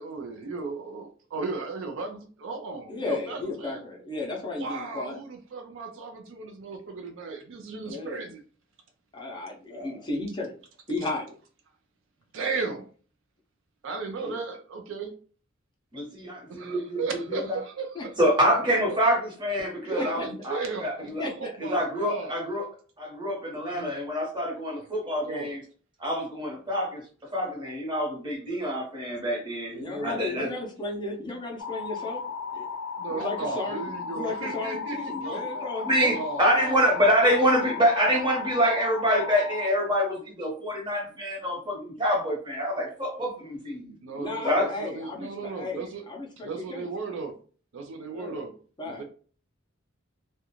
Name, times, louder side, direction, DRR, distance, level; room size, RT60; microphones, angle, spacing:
voice 1, 0.0-3.8 4.5-8.4 11.0-11.1 12.3-12.9 13.8-15.1 16.5-18.1 18.4-18.5 19.8-22.4 23.7-24.0 25.2-25.5 29.7-30.6 33.0-35.6 36.1-36.9 37.2-37.3 44.0-46.0 46.4-47.4 47.7-48.5 48.8-49.0, right 4 dB, 70° right, 5 dB, 0.4 m, -36 dB
voice 2, 2.9-5.2 7.8-8.3 9.1-10.5 10.9-11.4 17.9-18.0 20.0-20.3 21.2-21.5 23.5-23.6 29.7-32.2 32.5-32.7 33.1-36.2 44.1-46.9 48.1-48.4 48.8-49.0, left 2 dB, 20° left, -1 dB, 0.5 m, -34 dB
voice 3, 15.9-17.0 17.3-17.6 18.2-21.2 21.6-22.7 23.0-25.6 26.0-27.0 27.3-29.7 30.0-30.5 33.2-33.3 35.3-43.9 44.4-44.7, equal, 25° right, -2 dB, 1.0 m, -26 dB
sound 1, 31.6-39.7, left 5 dB, 80° left, 0.4 m, -35 dB
2.4 x 2.1 x 2.9 m, 0.41 s
head